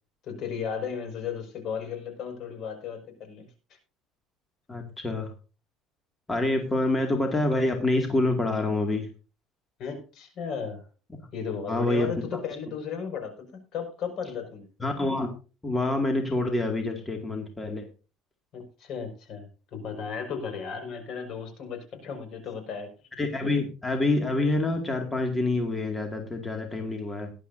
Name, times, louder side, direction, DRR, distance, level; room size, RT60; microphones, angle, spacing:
voice 1, 0.2-3.5 9.8-10.8 11.3-14.7 18.5-22.9, left 6 dB, 55° left, 6 dB, 5.5 m, -35 dB
voice 2, 4.7-5.3 6.3-9.1 11.7-12.1 14.8-15.3 15.6-17.9 23.2-27.3, left 2 dB, 15° left, 3 dB, 2.2 m, -27 dB
18.5 x 11.0 x 2.7 m, 0.34 s
cardioid pair, 140°, 0 cm